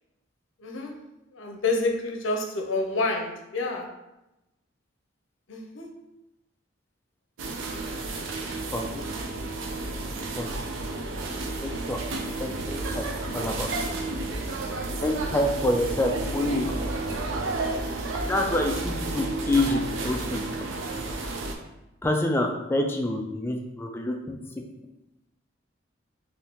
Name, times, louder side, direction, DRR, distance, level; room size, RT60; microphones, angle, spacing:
voice 1, 0.6-0.9 1.3-3.8 5.5-5.9 7.7-8.3, left 3 dB, 85° left, 2 dB, 0.6 m, -29 dB
sound 1, 7.4-21.6, right 2 dB, 80° right, 0.4 m, -31 dB
voice 2, 8.7-9.0 10.4-10.5 11.6-12.0 12.4-13.0 13.3-13.7 15.0-16.7 18.3-20.4 22.0-24.4, left 1 dB, 10° left, 2 dB, 0.3 m, -27 dB
3.5 x 2.6 x 2.8 m, 0.95 s
head